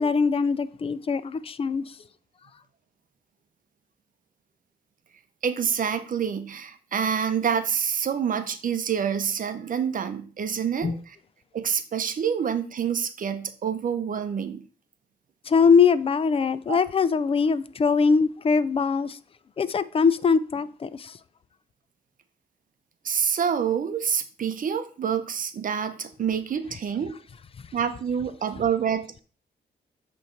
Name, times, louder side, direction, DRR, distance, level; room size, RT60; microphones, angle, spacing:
voice 1, 0.0-2.0 10.8-11.0 15.5-19.2 19.6-21.2, left 5 dB, 35° left, 0.4 m, -22 dB
voice 2, 5.4-11.2 11.5-14.6 16.7-16.8 23.0-27.2 27.7-29.2, right 7 dB, 55° right, 0.7 m, -27 dB
8.0 x 3.2 x 4.4 m
cardioid pair, 100°, 17 cm